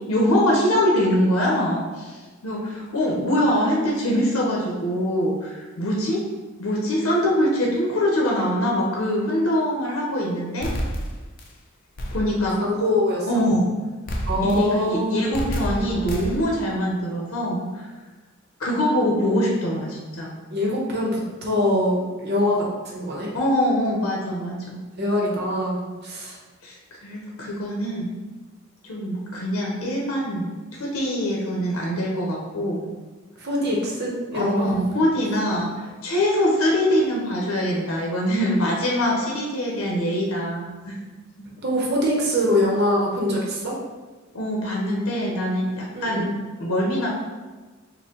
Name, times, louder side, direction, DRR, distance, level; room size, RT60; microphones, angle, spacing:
voice 1, 0.0-6.3 6.6-10.7 12.1-12.6 13.3-13.8 14.4-17.8 18.6-20.4 23.3-24.8 26.6-28.1 28.8-32.9 34.3-41.0 41.4-41.5 44.3-47.1, equal, 85° left, -2 dB, 0.7 m, -23 dB
sound 1, 10.6-11.5 12.0-12.5 14.1-14.8 15.3-16.6, equal, 40° left, 0.5 m, -29 dB
voice 2, 12.6-13.4 14.2-15.2 20.5-23.3 25.0-26.4 33.4-34.7 41.6-43.7 45.9-46.3, left 1 dB, 50° right, -2 dB, 0.9 m, -23 dB
4.3 x 2.1 x 3.7 m, 1.3 s
head